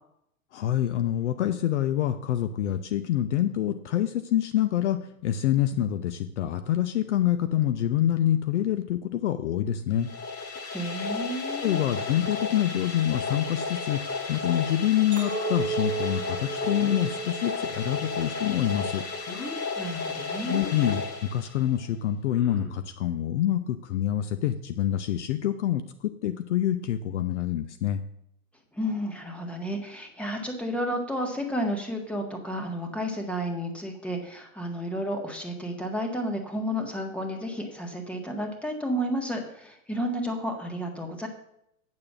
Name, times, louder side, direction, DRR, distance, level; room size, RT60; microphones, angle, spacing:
voice 1, 0.5-10.1 11.6-19.0 20.4-28.0, left 11 dB, 50° left, 9 dB, 0.8 m, -26 dB
sound 1, 9.9-21.9, left 4 dB, 30° left, 2.2 m, -33 dB
voice 2, 10.7-11.8 19.8-21.0 28.7-41.3, equal, 5° left, 3 dB, 1.7 m, -32 dB
Chink clink, 15.1-19.5 19.9-20.4, right 7 dB, 15° right, 1.5 m, -35 dB
sound 2, 16.6-17.1 19.3-19.6 21.0-21.1 22.2-22.9, left 2 dB, 65° left, 5.1 m, -39 dB
8.6 x 6.7 x 7.3 m, 0.76 s
figure-of-eight pair, 105°, 45 cm